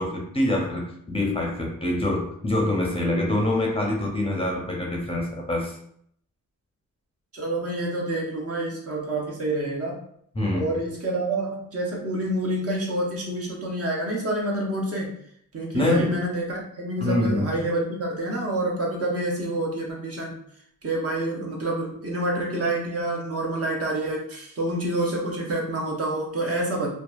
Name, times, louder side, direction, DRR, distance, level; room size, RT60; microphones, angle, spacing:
voice 1, 0.0-5.8 10.4-10.8 15.7-16.2 17.0-17.6, left 1 dB, 15° left, -1 dB, 0.5 m, -25 dB
voice 2, 7.3-10.0 10.5-15.1 15.5-20.4 20.8-26.9, right 1 dB, 45° right, -2 dB, 0.8 m, -27 dB
2.7 x 2.2 x 2.3 m, 0.66 s
cardioid pair, 85°, 33 cm